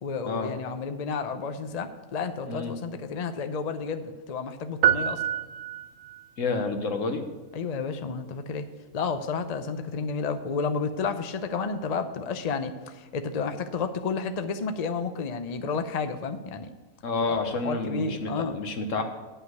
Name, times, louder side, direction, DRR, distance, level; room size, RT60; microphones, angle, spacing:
voice 1, 0.0-5.2 7.5-8.6 8.9-16.7 17.3-17.4 17.6-18.6, left 5 dB, 45° left, 8 dB, 0.6 m, -31 dB
sound 1, 4.8-6.3, right 10 dB, 75° right, 0.9 m, -26 dB
voice 2, 6.4-7.2 17.0-19.0, left 3 dB, 70° left, 5 dB, 1.4 m, -29 dB
9.9 x 5.7 x 7.7 m, 1.3 s
omnidirectional pair, 1.4 m